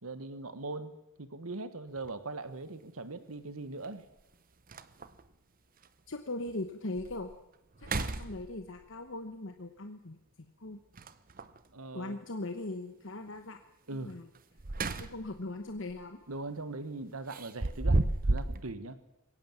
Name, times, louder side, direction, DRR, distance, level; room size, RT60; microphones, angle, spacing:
voice 1, 0.0-4.0 11.7-12.2 13.9-14.2 16.3-19.0, right 3 dB, 80° right, 13 dB, 1.5 m, -40 dB
sound 1, 2.0-2.1 3.8-3.9 4.3-4.4 4.7-5.3 5.8-5.9 6.5-6.6 7.0-7.3 7.7-8.8 10.9-11.6 14.3-15.4 15.8-16.0 17.3-18.6, right 2 dB, 40° right, 0.9 m, -32 dB
voice 2, 6.1-7.3 7.8-10.8 11.9-13.6 13.9-14.3 15.0-16.2, left 2 dB, 60° left, 6 dB, 1.2 m, -40 dB
22.0 x 17.5 x 7.4 m, 0.90 s
head